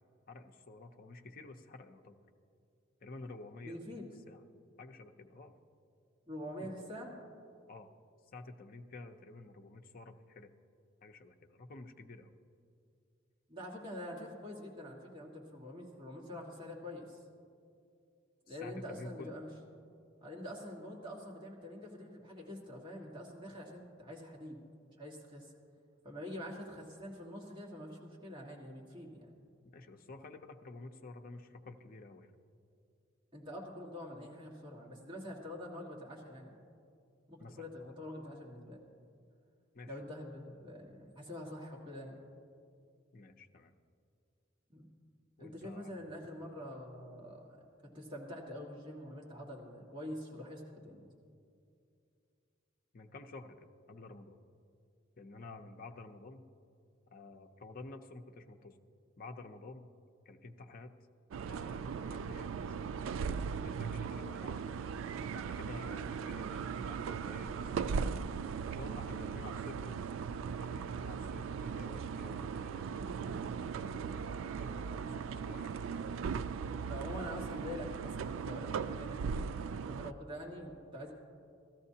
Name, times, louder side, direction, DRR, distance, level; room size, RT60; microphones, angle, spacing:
voice 1, 0.3-2.2 3.0-3.8 4.3-4.4 4.8-5.5 6.6-6.9 7.7-7.9 8.3-10.5 11.0-12.3 18.5-19.4 29.7-32.3 37.4-37.9 39.7-40.0 43.1-43.7 45.4-45.9 52.9-54.4 55.2-56.5 57.1-58.8 59.2-59.9 60.3-60.9 61.5-62.7 63.5-64.8 65.3-68.0 68.7-70.0 70.6-73.0 73.8-75.9, left 3 dB, 50° left, 4 dB, 0.6 m, -51 dB
voice 2, 3.6-4.1 6.3-7.1 13.5-17.2 18.5-19.5 20.2-24.6 25.0-25.5 26.0-29.3 33.3-36.6 37.3-38.8 39.9-42.2 44.7-44.8 45.4-47.7 47.9-51.0 76.9-81.1, left 1 dB, 25° right, -3 dB, 1.7 m, -45 dB
sound 1, 61.3-80.1, right 6 dB, 85° right, 0.3 m, -38 dB
16.5 x 13.5 x 2.8 m, 2.5 s
head